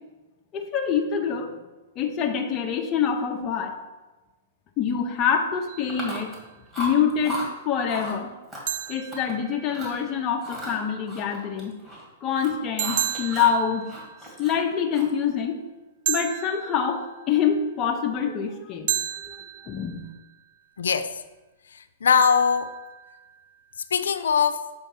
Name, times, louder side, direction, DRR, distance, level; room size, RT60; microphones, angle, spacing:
voice 1, 0.5-1.5 2.0-3.7 4.8-6.3 6.8-7.4 7.6-8.3 8.9-11.7 12.2-13.9 14.4-15.6 16.1-19.4 19.7-20.1, left 7 dB, 30° left, 3 dB, 0.7 m, -25 dB
sound 1, 5.7-6.5 8.7-10.1 12.8-14.6 16.1-17.4 18.9-20.3 22.2-23.4, right 12 dB, 55° right, 0.4 m, -33 dB
Chewing mastication, 5.9-6.4 6.7-7.5 7.9-8.2 8.5-9.3 9.7-10.0 10.4-12.1 12.3-13.6 13.9-15.2, equal, 15° right, 2.0 m, -36 dB
voice 2, 20.8-21.2 21.7-22.7 23.9-24.6, left 6 dB, 90° left, 11 dB, 0.5 m, -21 dB
7.1 x 3.5 x 5.4 m, 1.2 s
hypercardioid pair, 140°, 0 cm